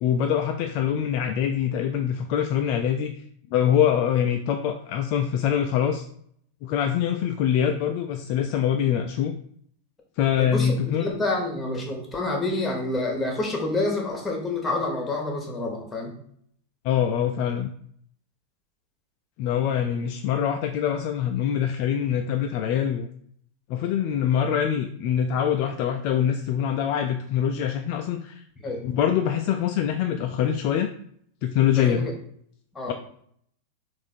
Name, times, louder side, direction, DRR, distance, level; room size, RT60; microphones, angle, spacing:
voice 1, 0.0-3.1 3.5-6.0 6.6-9.3 10.2-11.1 16.8-17.7 19.4-23.1 23.7-28.4 28.8-30.9 31.4-32.1 32.9-33.0, left 9 dB, 45° left, 5 dB, 0.3 m, -24 dB
voice 2, 10.4-16.1 28.6-28.8 31.7-32.1 32.7-32.9, left 2 dB, 15° left, 0 dB, 1.1 m, -28 dB
3.5 x 2.6 x 4.2 m, 0.63 s
figure-of-eight pair, 90°, 0 cm